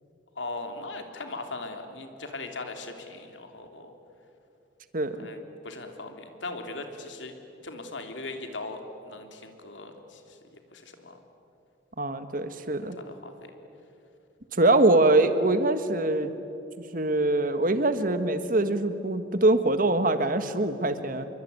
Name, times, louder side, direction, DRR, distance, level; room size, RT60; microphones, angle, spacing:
voice 1, 0.3-3.9 5.1-7.3 7.6-11.2 12.9-13.5, left 2 dB, 90° left, 5 dB, 3.1 m, -39 dB
voice 2, 12.0-13.0 14.6-16.4 16.9-21.3, right 2 dB, 50° right, 10 dB, 1.6 m, -23 dB
27.0 x 23.0 x 9.6 m, 2.8 s
head